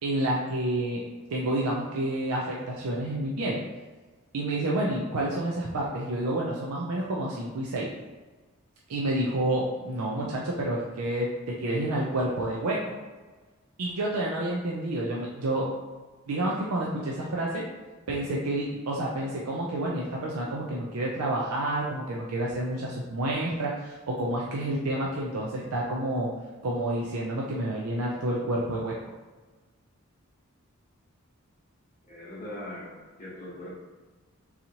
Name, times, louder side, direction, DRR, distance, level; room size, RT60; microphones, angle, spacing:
voice 1, 0.0-1.0 1.3-3.6 4.3-7.9 8.9-12.9 13.8-15.7 16.3-17.7 18.1-26.3 26.6-29.0, right 1 dB, 80° right, -3 dB, 0.5 m, -29 dB
voice 2, 32.0-33.7, left 1 dB, 35° left, -7 dB, 0.9 m, -40 dB
3.9 x 2.9 x 2.7 m, 1.3 s
head